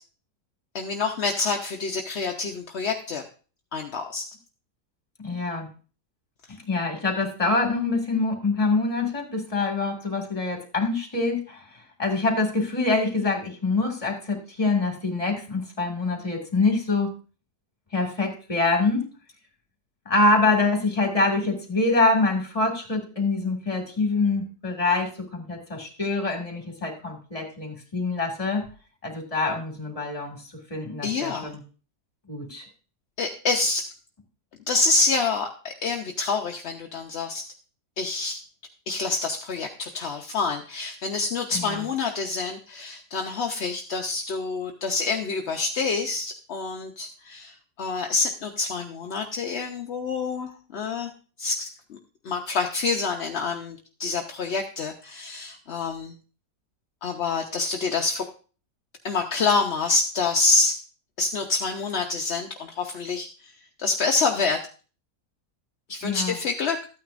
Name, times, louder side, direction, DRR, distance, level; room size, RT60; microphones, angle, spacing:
voice 1, 0.7-3.2 3.7-4.2 31.0-31.5 33.2-33.9 34.7-37.4 38.0-38.4 38.9-47.5 47.8-51.1 51.4-52.0 52.2-56.1 57.0-58.2 59.0-60.8 61.2-63.5 63.8-64.6 65.9-66.8, left 4 dB, 55° left, 3 dB, 0.8 m, -27 dB
voice 2, 5.2-5.7 6.6-17.1 17.9-19.0 20.1-28.6 29.0-30.4 30.7-31.6 32.3-32.7 41.5-41.9 66.0-66.4, left 3 dB, 20° left, 1 dB, 2.0 m, -25 dB
13.5 x 9.2 x 2.5 m, 0.36 s
omnidirectional pair, 1.7 m